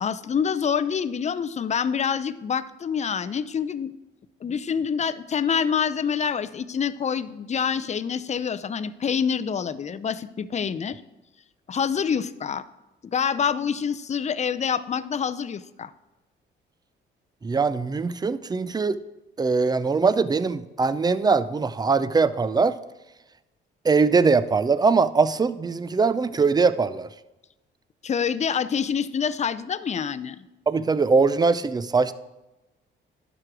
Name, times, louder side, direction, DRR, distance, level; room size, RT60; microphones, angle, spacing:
voice 1, 0.0-3.9 4.4-11.0 11.7-12.6 13.1-15.9 28.0-30.4, left 7 dB, 35° left, 14 dB, 0.5 m, -26 dB
voice 2, 17.4-19.0 19.4-22.8 23.8-27.1 30.7-32.1, right 4 dB, 20° right, 15 dB, 0.5 m, -21 dB
11.5 x 5.1 x 6.1 m, 1.0 s
cardioid pair, 90°, 20 cm